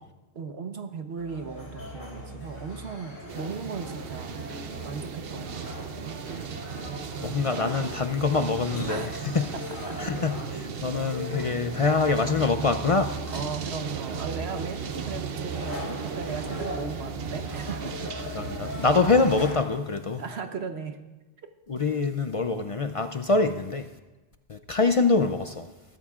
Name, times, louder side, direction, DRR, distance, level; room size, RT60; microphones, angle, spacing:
voice 1, 0.3-4.3 4.8-6.2 8.9-9.2 9.9-10.0 13.3-17.9 20.2-21.0 21.8-21.9, right 5 dB, 85° right, 1.3 m, -36 dB
sound 1, 1.2-19.6, left 1 dB, 60° left, 3.4 m, -40 dB
sound 2, 3.3-19.5, right 7 dB, 70° right, 0.9 m, -36 dB
voice 2, 7.2-9.1 9.3-9.5 10.0-13.2 18.3-20.2 21.7-23.9 24.5-25.7, left 4 dB, 45° left, 0.5 m, -25 dB
21.0 x 12.5 x 2.4 m
omnidirectional pair, 1.0 m